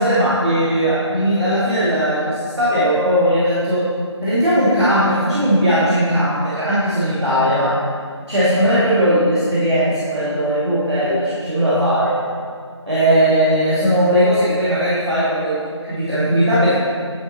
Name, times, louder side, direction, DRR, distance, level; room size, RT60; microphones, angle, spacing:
voice 1, 0.0-3.9 4.2-7.8 8.3-12.2 12.8-16.7, equal, 65° right, -11 dB, 2.0 m, -18 dB
9.8 x 4.1 x 4.1 m, 2.1 s
figure-of-eight pair, 180°, 16 cm